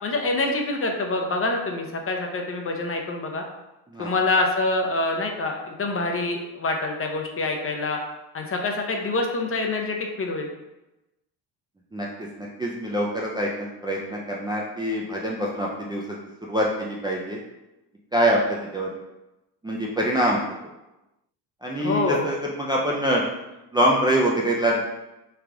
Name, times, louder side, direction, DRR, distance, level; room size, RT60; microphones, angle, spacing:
voice 1, 0.0-3.4 4.0-8.0 8.3-10.5 21.8-22.3, left 2 dB, 30° left, 2 dB, 0.6 m, -26 dB
voice 2, 12.4-16.2 16.4-17.4 18.1-18.9 19.6-20.4 21.6-23.2 23.7-24.8, equal, 10° right, -4 dB, 0.4 m, -24 dB
3.3 x 2.4 x 3.5 m, 0.98 s
supercardioid pair, 80°, 44 cm